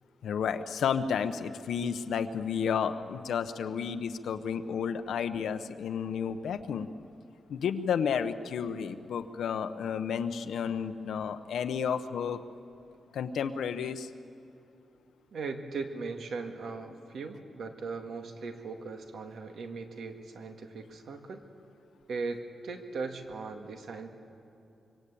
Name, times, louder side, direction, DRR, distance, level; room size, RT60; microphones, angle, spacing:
voice 1, 0.2-6.9 7.5-12.4 13.1-14.1, left 7 dB, 90° left, 8 dB, 1.0 m, -32 dB
voice 2, 15.3-21.4 22.1-24.1, right 4 dB, 65° right, 5 dB, 2.0 m, -38 dB
25.0 x 24.0 x 8.7 m, 2.8 s
wide cardioid pair, 175°, 0 cm